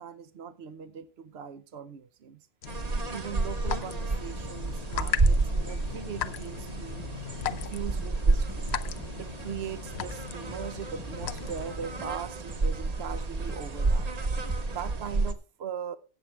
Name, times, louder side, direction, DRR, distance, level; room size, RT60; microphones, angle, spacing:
voice 1, 0.0-2.5 3.1-7.1 7.5-8.7 9.2-14.1 14.7-16.0, right 8 dB, 85° right, 11 dB, 1.0 m, -40 dB
sound 1, 2.6-12.0, left 10 dB, 85° left, 1.0 m, -38 dB
sound 2, 2.7-15.3, right 3 dB, 40° right, 1.0 m, -30 dB
sound 3, 7.0-14.8, right 1 dB, 5° right, 0.5 m, -49 dB
17.5 x 7.3 x 3.3 m, 0.32 s
omnidirectional pair, 1.0 m